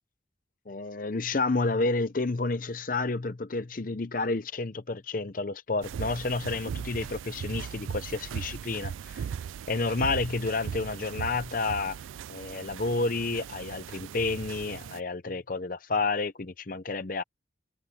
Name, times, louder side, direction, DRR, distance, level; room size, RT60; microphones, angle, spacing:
voice 1, 0.7-9.2 9.7-12.0 12.3-17.2, left 3 dB, 45° left, 0.7 m, -30 dB
sound 1, 5.8-15.0, right 7 dB, 90° right, 0.3 m, -38 dB
head